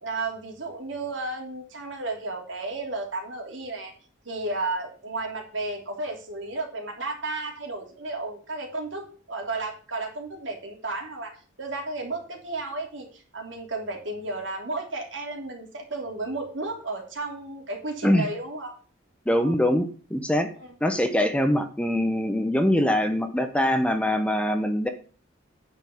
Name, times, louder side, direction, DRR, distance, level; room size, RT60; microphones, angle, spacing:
voice 1, 0.0-3.9 4.2-18.8 19.3-19.5 20.6-20.7 21.5-21.6, right 2 dB, 70° right, 2 dB, 3.2 m, -33 dB
voice 2, 19.3-20.5 20.8-24.9, left 1 dB, 5° left, 7 dB, 0.9 m, -23 dB
9.6 x 5.4 x 7.0 m, 0.40 s
head